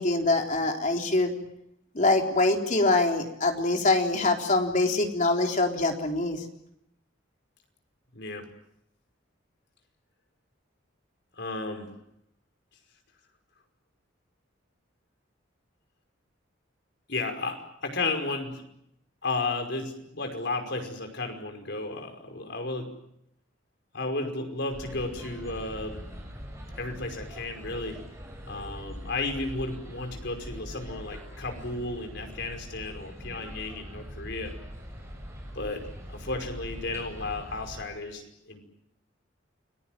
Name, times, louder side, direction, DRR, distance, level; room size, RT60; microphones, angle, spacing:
voice 1, 0.0-1.4 1.9-6.4, left 2 dB, 40° left, 3 dB, 3.9 m, -24 dB
voice 2, 8.1-8.5 11.4-11.9 17.1-18.6 19.2-22.9 23.9-26.1 26.8-28.0 28.5-34.5 35.6-35.8 36.1-38.6, left 3 dB, 60° left, 5 dB, 5.4 m, -33 dB
sound 1, 24.7-37.9, equal, 15° right, 7.2 m, -42 dB
30.0 x 21.5 x 7.7 m, 0.78 s
head